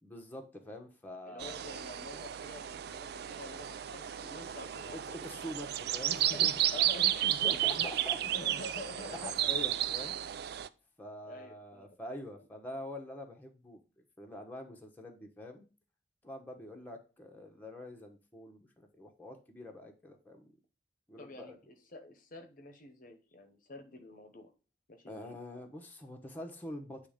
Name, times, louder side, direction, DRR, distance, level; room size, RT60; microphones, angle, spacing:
voice 1, 0.0-1.5 4.9-6.9 7.3-8.2 8.6-8.7 9.1-10.2 11.0-13.8 14.2-15.6 16.2-20.5 21.1-21.6 25.1-27.1, left 1 dB, 10° left, 1 dB, 1.0 m, -45 dB
voice 2, 1.2-5.3 6.0-7.9 8.3-9.3 9.6-9.7 11.2-11.9 21.2-24.5 24.9-25.3, left 2 dB, 50° left, 6 dB, 0.9 m, -48 dB
sound 1, 1.4-10.7, right 12 dB, 60° right, 0.4 m, -33 dB
8.9 x 3.2 x 5.0 m, 0.34 s
head